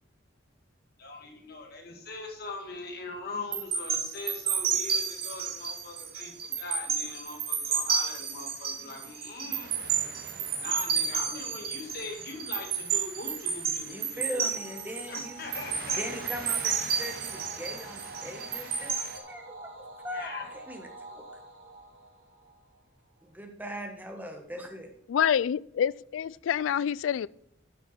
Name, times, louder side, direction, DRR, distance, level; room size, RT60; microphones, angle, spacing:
voice 1, 1.0-9.7 10.6-14.5 15.1-16.0 20.1-20.5, left 3 dB, 55° left, 2.1 m, -41 dB
sound 1, 3.5-19.2, right 7 dB, 50° right, 1.8 m, -31 dB
voice 2, 13.9-15.5 16.0-19.7 20.0-20.3 20.7-21.2 23.2-24.9, equal, 10° right, 1.4 m, -40 dB
sound 2, 14.5-23.1, right 1 dB, 80° right, 2.4 m, -47 dB
voice 3, 25.1-27.3, left 8 dB, 90° left, 0.3 m, -27 dB
12.0 x 6.0 x 4.3 m
head